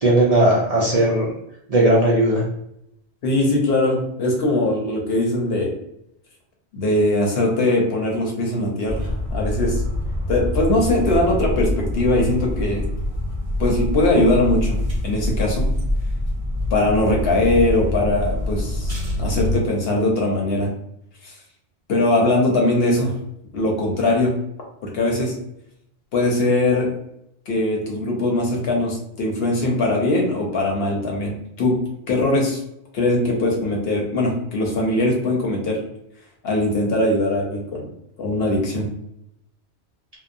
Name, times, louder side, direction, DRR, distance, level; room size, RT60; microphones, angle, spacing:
voice 1, 0.0-1.3 1.7-2.4, right 1 dB, 50° right, -5 dB, 0.4 m, -17 dB
voice 2, 3.2-5.7 6.7-9.8 10.3-12.8 13.6-14.8 15.0-15.6 16.7-20.7 21.2-21.3 21.9-23.1 23.5-24.3 24.9-25.3 26.1-26.9 27.5-31.7 32.1-32.6 32.9-35.8 36.4-37.8 38.2-38.9, left 2 dB, 70° left, -1 dB, 0.9 m, -21 dB
sound 1, 8.9-19.6, left 1 dB, 35° right, 1.0 m, -25 dB
2.7 x 2.1 x 2.5 m, 0.78 s
omnidirectional pair, 1.1 m